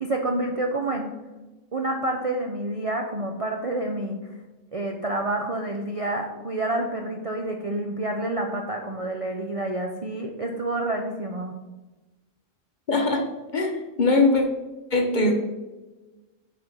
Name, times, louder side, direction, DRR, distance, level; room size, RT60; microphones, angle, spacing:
voice 1, 0.0-1.1 1.7-4.2 4.7-11.6, right 2 dB, 40° right, 2 dB, 0.5 m, -28 dB
voice 2, 12.9-13.2 13.5-14.4 14.9-15.3, left 3 dB, 40° left, 3 dB, 1.0 m, -21 dB
6.7 x 4.4 x 5.4 m, 1.1 s
omnidirectional pair, 1.4 m